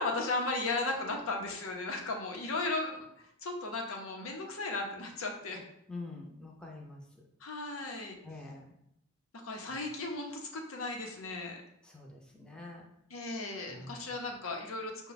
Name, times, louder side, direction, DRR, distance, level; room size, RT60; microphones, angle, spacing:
voice 1, 0.0-3.1 3.4-5.6 7.4-8.1 9.4-11.6 13.1-15.1, left 2 dB, 85° left, 2 dB, 0.8 m, -35 dB
voice 2, 5.9-7.0 8.2-8.7 9.6-9.7 11.8-12.9 13.7-14.1, left 2 dB, 5° left, -2 dB, 0.6 m, -46 dB
5.6 x 2.3 x 4.0 m, 0.77 s
head